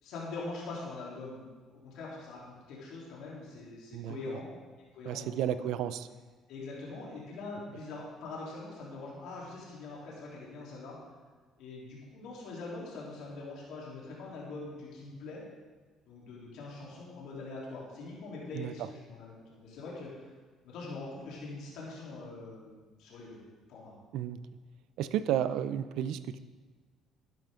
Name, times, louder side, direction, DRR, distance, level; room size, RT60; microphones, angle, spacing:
voice 1, 0.0-4.5 4.9-5.7 6.5-11.0 11.6-15.4 16.1-20.3 20.6-23.4 23.7-23.9, left 3 dB, 75° left, -5 dB, 3.5 m, -43 dB
voice 2, 3.9-4.4 5.1-6.1 18.5-18.7 24.1-24.4 25.0-26.4, right 10 dB, 75° right, 13 dB, 0.5 m, -32 dB
12.0 x 10.5 x 3.8 m, 1.4 s
supercardioid pair, 75°, 0 cm